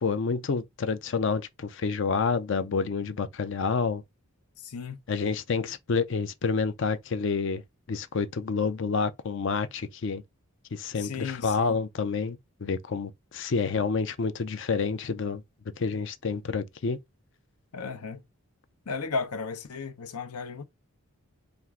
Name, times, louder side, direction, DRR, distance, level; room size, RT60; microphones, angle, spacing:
voice 1, 0.0-4.0 5.1-7.6 7.9-10.2 10.7-15.4 15.8-17.0, left 5 dB, 55° left, 0.4 m, -28 dB
voice 2, 4.6-5.0 11.0-11.8 17.7-18.2 18.9-20.6, left 4 dB, 90° left, 0.8 m, -34 dB
4.3 x 2.5 x 3.5 m
head